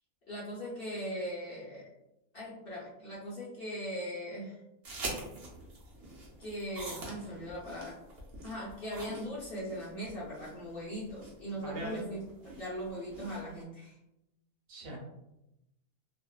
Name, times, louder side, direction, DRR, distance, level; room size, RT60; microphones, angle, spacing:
voice 1, 0.3-1.9 2.3-4.6 6.4-8.0 8.4-12.2 12.6-14.0, equal, 50° left, -7 dB, 0.8 m, -39 dB
sound 1, 4.8-13.6, right 2 dB, 55° right, 0.8 m, -45 dB
voice 2, 11.6-12.0 14.7-15.0, right 1 dB, 75° right, -2 dB, 1.1 m, -40 dB
2.5 x 2.3 x 2.2 m, 0.89 s
omnidirectional pair, 1.5 m